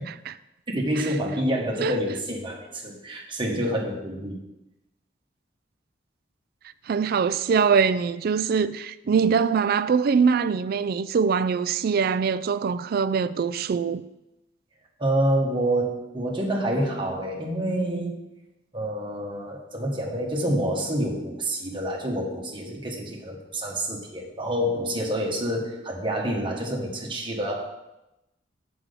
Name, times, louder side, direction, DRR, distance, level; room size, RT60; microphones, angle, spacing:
voice 1, 0.7-4.4 15.0-18.2 18.7-27.7, right 1 dB, 25° right, 1.3 m, -27 dB
voice 2, 6.9-14.0, right 6 dB, 50° right, 0.3 m, -23 dB
6.0 x 5.1 x 6.6 m
head